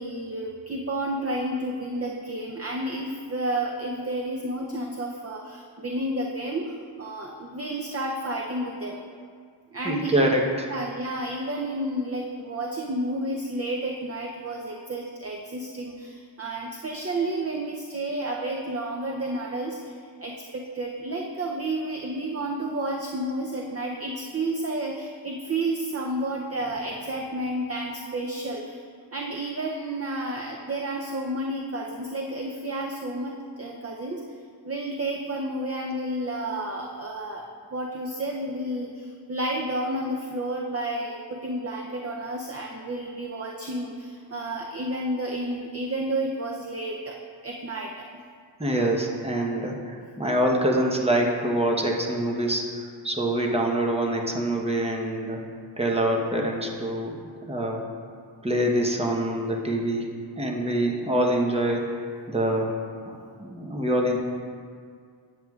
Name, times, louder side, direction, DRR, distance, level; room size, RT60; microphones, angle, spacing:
voice 1, 0.0-9.0 9.7-10.3 10.7-28.8 29.1-34.2 34.6-47.2 47.4-48.1, right 1 dB, 35° right, 0 dB, 0.5 m, -31 dB
voice 2, 9.8-10.7 48.6-55.4 55.8-57.1 57.4-57.9 58.4-60.1 60.4-61.9 62.3-62.8 63.1-64.2, right 1 dB, 15° right, -1 dB, 0.9 m, -25 dB
9.3 x 7.6 x 2.4 m, 2.1 s
wide cardioid pair, 50°, 45 cm